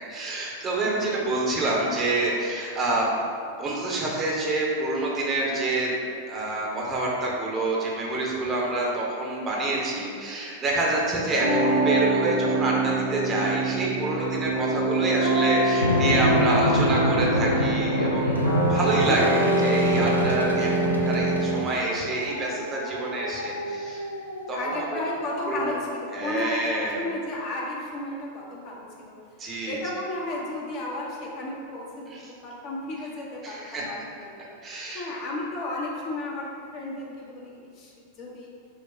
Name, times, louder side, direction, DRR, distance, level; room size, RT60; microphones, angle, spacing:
voice 1, 0.1-3.1 3.6-5.9 6.3-24.0 24.5-25.0 25.5-25.6 26.1-27.0 29.4-29.8 32.1-32.2 33.4-33.8 34.6-35.1, right 2 dB, 25° right, -3 dB, 0.8 m, -27 dB
voice 2, 0.8-1.3 12.6-13.1 18.7-19.5 20.3-20.5 22.6-22.7 24.5-29.2 29.7-34.4 34.6-38.5, left 2 dB, 40° left, -3 dB, 0.8 m, -34 dB
sound 1, 11.4-21.6, right 2 dB, 85° right, 1.3 m, -24 dB
sound 2, 15.6-26.2, equal, 85° left, 0.4 m, -28 dB
4.7 x 2.2 x 4.3 m, 2.3 s
figure-of-eight pair, 90°, 0 cm